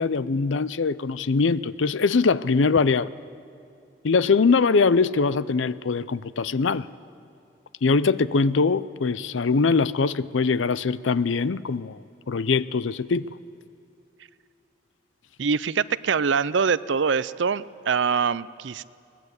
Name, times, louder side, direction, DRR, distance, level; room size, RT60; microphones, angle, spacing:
voice 1, 0.0-3.1 4.0-6.9 7.8-12.0 12.3-13.3, left 4 dB, 75° left, 0.6 m, -22 dB
voice 2, 15.4-18.8, right 5 dB, 70° right, 0.5 m, -24 dB
23.5 x 19.5 x 8.2 m
head